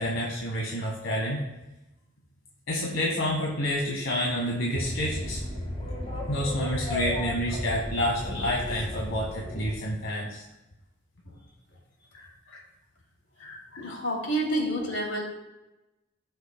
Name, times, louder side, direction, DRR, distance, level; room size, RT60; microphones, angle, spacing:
voice 1, 0.0-1.4 2.7-5.4 6.3-10.4 12.1-12.6 13.4-13.6, equal, 90° left, -3 dB, 1.5 m, -29 dB
sound 1, 4.7-9.7, left 1 dB, 30° left, 1.6 m, -34 dB
voice 2, 13.8-15.2, right 1 dB, 70° left, -1 dB, 2.6 m, -29 dB
17.0 x 6.3 x 2.2 m, 0.99 s
head